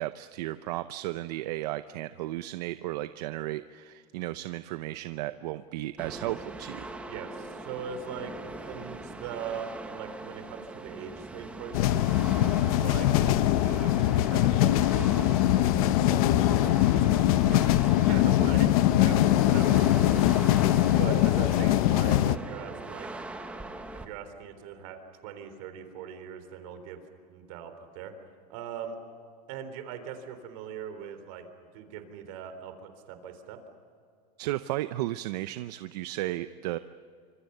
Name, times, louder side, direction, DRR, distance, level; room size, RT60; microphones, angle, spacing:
voice 1, 0.0-6.9 34.4-36.8, right 16 dB, 75° right, 11 dB, 0.8 m, -34 dB
sound 1, 6.0-24.1, right 2 dB, 5° right, 1.2 m, -41 dB
voice 2, 7.1-12.2 12.8-23.1 23.9-27.0 27.3-28.1 28.5-29.0 29.5-31.4 31.7-33.6, right 7 dB, 55° right, 8 dB, 3.7 m, -41 dB
sound 2, 11.7-22.4, left 13 dB, 60° left, 0.9 m, -22 dB
28.0 x 26.0 x 6.8 m, 2.3 s
supercardioid pair, 180°, 20 cm